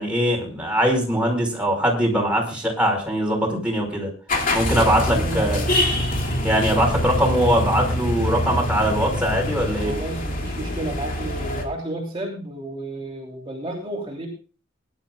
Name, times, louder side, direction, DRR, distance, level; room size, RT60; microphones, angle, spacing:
voice 1, 0.0-4.1 4.5-5.6 6.4-9.9, equal, 5° right, -1 dB, 5.1 m, -21 dB
sound 1, 4.3-11.6, left 1 dB, 45° left, 2.8 m, -25 dB
voice 2, 4.7-5.8 9.8-14.3, right 1 dB, 25° right, -3 dB, 3.3 m, -32 dB
22.0 x 11.5 x 2.4 m, 0.37 s
head